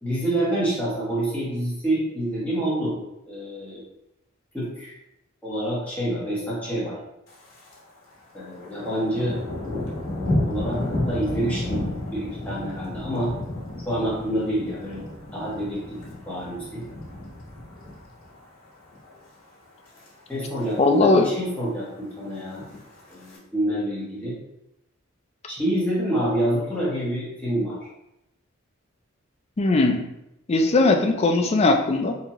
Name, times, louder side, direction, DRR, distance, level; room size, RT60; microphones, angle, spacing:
voice 1, 0.0-2.9 3.3-3.8 4.5-4.9 5.4-7.0 8.3-9.4 10.5-13.3 13.8-15.0 15.3-16.0 16.3-16.8 20.3-22.6 23.1-24.4 25.5-27.8, right 1 dB, 5° left, -8 dB, 1.3 m, -27 dB
Thunder, 7.3-7.8 8.1-18.4 18.8-19.2 19.6-20.1 20.3-20.4 20.6-20.7 21.1-21.7 22.4-23.4, left 1 dB, 80° left, 1.1 m, -32 dB
voice 2, 20.8-21.3 29.6-30.0 30.5-32.2, left 2 dB, 30° left, 4 dB, 0.4 m, -19 dB
4.0 x 2.8 x 2.9 m, 0.88 s
head